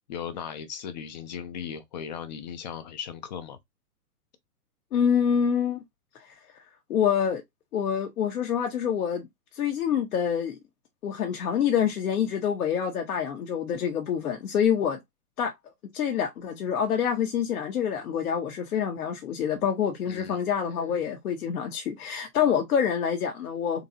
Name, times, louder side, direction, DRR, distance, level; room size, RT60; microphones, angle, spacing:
voice 1, 0.1-3.6 20.1-20.4, left 8 dB, 30° left, 0.5 m, -37 dB
voice 2, 4.9-5.8 6.2-6.6 6.9-7.4 7.7-9.3 9.5-10.6 11.0-15.0 15.4-15.5 15.9-23.9, left 8 dB, 65° left, 1.0 m, -26 dB
3.8 x 2.8 x 2.7 m
hypercardioid pair, 125°, 48 cm